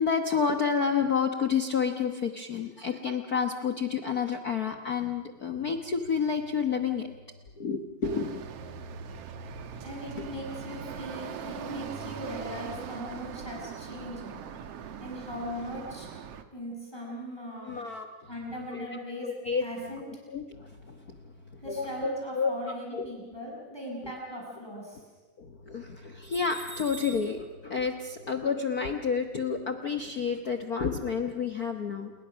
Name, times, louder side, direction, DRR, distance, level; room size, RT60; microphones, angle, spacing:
voice 1, 0.0-7.1 7.6-8.4 10.2-10.3 17.6-18.1 18.7-18.9 19.2-19.6 20.0-21.2 21.5-22.5 22.9-23.2 25.4-32.1, left 6 dB, 85° left, 5 dB, 0.8 m, -30 dB
sound 1, 8.0-16.4, right 7 dB, 60° right, 2.0 m, -40 dB
voice 2, 9.8-14.4 15.0-16.1 16.5-17.7 18.3-19.3 19.6-20.1 21.6-25.0, equal, 5° left, -3 dB, 7.2 m, -39 dB
29.0 x 21.5 x 6.3 m, 1.4 s
omnidirectional pair, 3.5 m